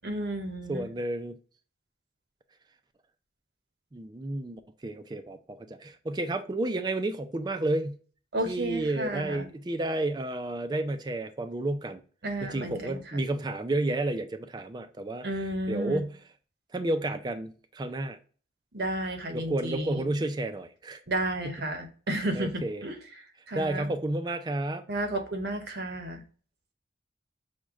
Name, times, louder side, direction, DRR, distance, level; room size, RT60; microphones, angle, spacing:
voice 1, 0.0-0.9 8.3-9.5 12.2-13.2 15.2-16.0 18.7-20.1 21.1-23.0 23.5-23.9 24.9-26.2, right 1 dB, 60° right, 0.8 m, -32 dB
voice 2, 0.7-1.3 3.9-8.0 8.5-12.0 12.5-15.3 15.7-16.2 16.7-18.2 19.3-21.0 22.3-22.8 23.5-24.8, right 2 dB, 25° right, 0.3 m, -31 dB
6.1 x 2.1 x 3.5 m
head